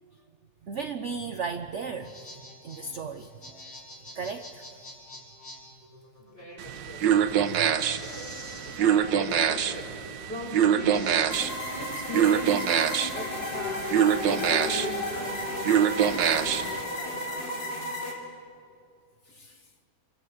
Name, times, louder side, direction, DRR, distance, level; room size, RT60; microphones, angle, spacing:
voice 1, 0.6-2.1 2.6-3.3 4.1-4.6 7.5-7.7 19.3-19.7, right 5 dB, 50° right, 9 dB, 1.0 m, -35 dB
sound 1, 1.8-16.6, equal, 55° left, 5.1 m, -48 dB
voice 2, 6.2-7.2 7.9-12.7 13.1-17.9, equal, 30° left, -3 dB, 7.2 m, -40 dB
sound 2, 6.6-16.8, right 9 dB, 85° right, 1.7 m, -25 dB
sound 3, 11.3-18.1, left 2 dB, 80° left, 4.4 m, -34 dB
28.5 x 23.5 x 7.8 m, 2.3 s
omnidirectional pair, 1.9 m